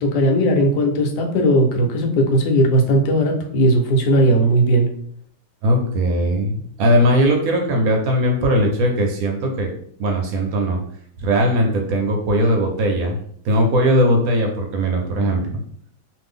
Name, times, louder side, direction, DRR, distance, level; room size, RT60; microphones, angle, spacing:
voice 1, 0.0-4.9, right 1 dB, 80° left, 3 dB, 1.2 m, -17 dB
voice 2, 5.6-9.7 10.0-10.8 11.2-13.2 13.4-15.6, equal, 70° right, 1 dB, 1.0 m, -19 dB
2.6 x 2.5 x 3.5 m, 0.63 s
omnidirectional pair, 1.8 m